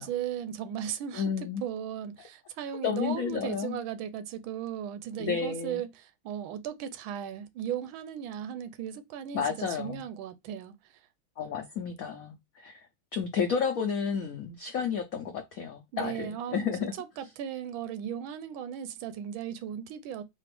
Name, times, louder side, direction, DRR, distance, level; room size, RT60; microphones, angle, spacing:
voice 1, 0.0-11.0 15.9-16.7 17.0-20.2, right 9 dB, 90° right, 1.4 m, -36 dB
voice 2, 1.1-1.6 2.8-3.8 5.2-5.8 9.3-10.0 11.4-12.8 13.1-16.9, left 6 dB, 70° left, 0.8 m, -31 dB
4.2 x 2.4 x 3.3 m
omnidirectional pair, 2.2 m